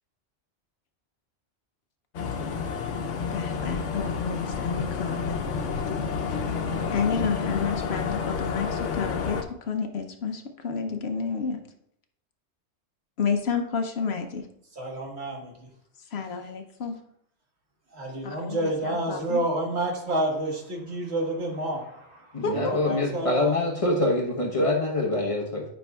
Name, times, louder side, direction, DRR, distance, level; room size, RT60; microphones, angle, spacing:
sound 1, 2.1-9.4, left 5 dB, 90° left, 1.1 m, -30 dB
voice 1, 3.3-5.4 6.9-9.4 9.7-11.6 13.2-14.4 16.1-17.0 18.2-19.4 22.4-22.8, left 5 dB, 65° left, 6 dB, 0.9 m, -30 dB
voice 2, 14.7-15.5 17.9-23.5, right 1 dB, 65° right, -1 dB, 1.7 m, -29 dB
voice 3, 22.3-25.7, left 2 dB, 30° left, -1 dB, 1.0 m, -25 dB
11.0 x 5.4 x 2.3 m, 0.74 s
omnidirectional pair, 1.2 m